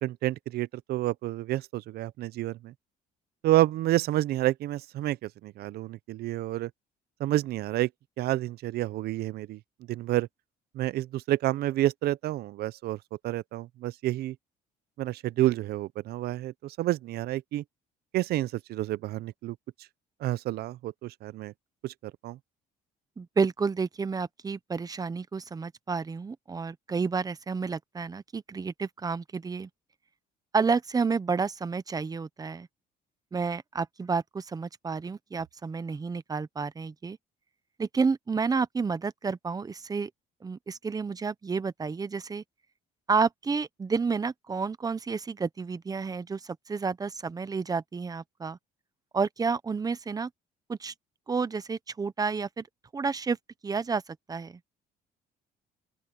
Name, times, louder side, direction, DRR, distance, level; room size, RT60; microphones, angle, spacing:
voice 1, 0.0-2.7 3.4-6.7 7.2-7.9 8.2-9.6 9.9-10.3 10.7-13.0 13.2-14.4 15.0-17.6 18.1-19.6 20.2-21.5 21.8-21.9 22.2-22.4, right 15 dB, 70° right, 0.6 m, -29 dB
voice 2, 23.2-29.7 30.5-32.7 33.3-37.2 37.8-40.1 40.4-42.4 43.1-48.6 49.1-50.3 50.7-50.9 51.3-52.7 52.9-53.4 53.6-54.0 54.3-54.6, right 5 dB, 20° right, 0.9 m, -30 dB
open air
cardioid pair, 110°, 17 cm